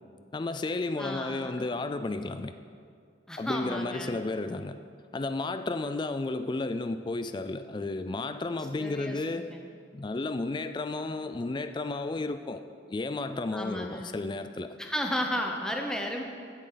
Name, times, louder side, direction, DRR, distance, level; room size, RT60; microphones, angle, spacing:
voice 1, 0.3-2.5 3.4-4.8 5.1-9.5 9.9-12.6 12.9-14.7, left 2 dB, 25° left, 10 dB, 0.3 m, -32 dB
voice 2, 1.0-1.7 3.3-4.1 8.8-9.6 13.5-14.1 14.8-16.2, equal, 5° left, 2 dB, 0.8 m, -33 dB
15.0 x 7.4 x 3.9 m, 2.3 s
head